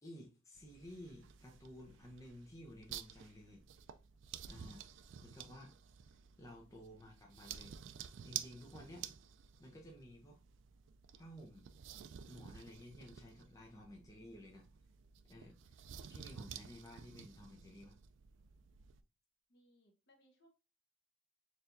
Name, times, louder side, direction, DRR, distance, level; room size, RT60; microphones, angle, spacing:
voice 1, 0.0-3.6 4.5-4.9 5.2-5.7 6.4-7.8 8.2-9.1 9.6-10.4 11.2-11.7 12.3-14.7 15.3-15.6 16.1-18.0, left 1 dB, 15° left, 0.6 m, -54 dB
sound 1, 0.5-19.0, right 9 dB, 65° right, 0.3 m, -52 dB
voice 2, 19.5-20.5, equal, 55° left, 1.1 m, -70 dB
4.4 x 3.3 x 2.6 m
head